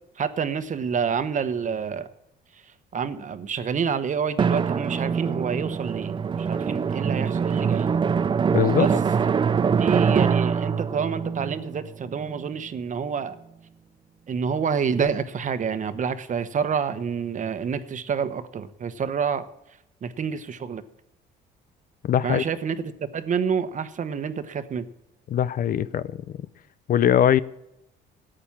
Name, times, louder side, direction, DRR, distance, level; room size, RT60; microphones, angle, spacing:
voice 1, 0.2-2.1 2.5-2.6 2.9-7.9 8.8-8.9 9.8-13.4 14.3-19.5 20.0-20.8 22.2-24.9, right 6 dB, 40° right, 1.1 m, -28 dB
Drum, 4.4-12.7, right 6 dB, 25° right, 0.4 m, -24 dB
voice 2, 8.5-8.9 22.0-22.4 25.3-26.2 26.9-27.4, left 10 dB, 50° left, 0.5 m, -21 dB
14.0 x 8.9 x 7.3 m
cardioid pair, 105°, 19 cm